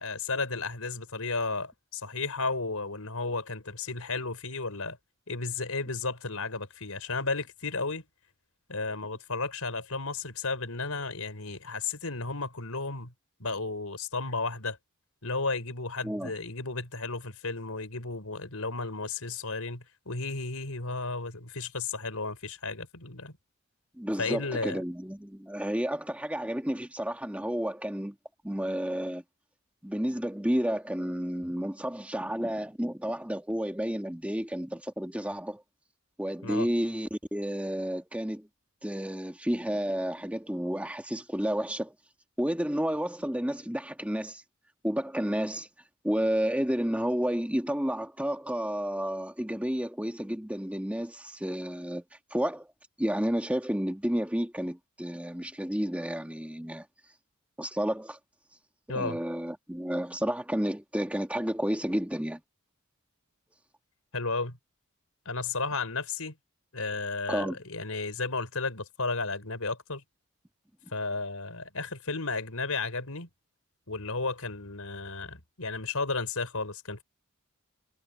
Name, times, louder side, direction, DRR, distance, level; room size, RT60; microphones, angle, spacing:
voice 1, 0.0-5.0 5.3-8.1 8.7-13.1 13.4-14.8 15.2-23.3 24.2-24.8 36.4-36.7 58.9-59.2 64.1-64.6 65.2-66.4 66.7-70.0 70.9-73.3 73.9-77.0, left 3 dB, 80° left, 4.4 m, -33 dB
voice 2, 24.0-28.1 28.4-29.2 29.8-35.6 36.2-38.5 38.8-41.9 42.4-44.4 44.8-45.7 46.0-52.0 52.3-52.7 53.0-56.8 57.6-58.2 58.9-62.4 67.3-67.6, equal, 5° right, 1.5 m, -31 dB
head